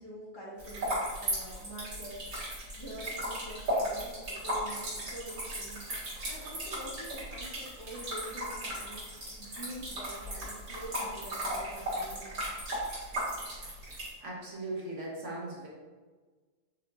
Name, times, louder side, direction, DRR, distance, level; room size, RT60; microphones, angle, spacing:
voice 1, 0.0-5.8 6.3-9.1 9.4-12.3, right 1 dB, 20° left, -7 dB, 1.3 m, -46 dB
sound 1, 0.6-14.1, right 1 dB, 85° right, 2.3 m, -36 dB
voice 2, 14.2-15.7, right 2 dB, 55° right, -4 dB, 1.4 m, -38 dB
5.5 x 3.6 x 2.5 m, 1.4 s
omnidirectional pair, 1.6 m